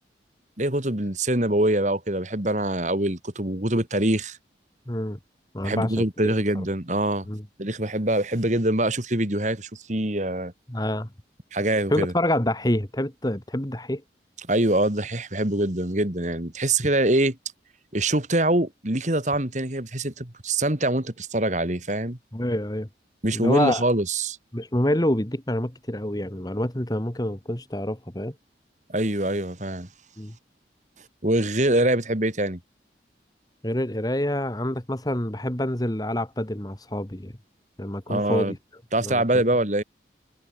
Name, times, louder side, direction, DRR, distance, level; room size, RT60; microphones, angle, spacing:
voice 1, 0.6-4.4 5.6-7.3 7.6-10.5 11.5-12.1 14.5-17.4 17.9-22.2 23.2-24.4 28.9-29.9 31.2-32.6 38.1-38.5 38.9-39.8, right 1 dB, 40° right, 2.8 m, -24 dB
voice 2, 4.9-5.2 5.5-6.6 7.3-7.4 10.7-11.1 11.9-14.0 22.3-22.9 23.3-23.8 24.5-28.4 30.2-30.4 33.6-37.3 37.8-38.6 39.0-39.4, left 1 dB, 20° left, 1.8 m, -27 dB
head